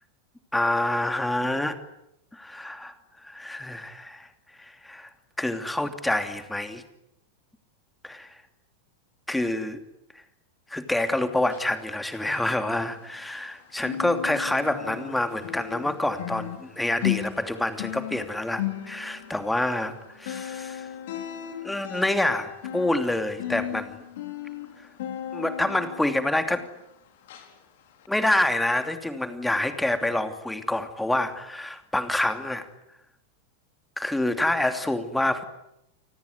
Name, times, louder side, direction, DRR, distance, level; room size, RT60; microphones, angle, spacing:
voice 1, 0.5-1.8 2.3-2.9 3.3-4.3 4.6-5.1 5.4-6.8 8.0-8.3 9.3-9.8 10.7-20.9 21.6-24.0 25.3-26.7 28.1-32.6 34.0-35.4, left 1 dB, 5° left, 8 dB, 2.9 m, -27 dB
sound 1, 11.4-13.5 13.8-26.9 27.3-27.5 28.0-28.1, left 11 dB, 55° left, 5.0 m, -36 dB
30.0 x 19.5 x 9.6 m, 0.82 s
figure-of-eight pair, 90°, 0 cm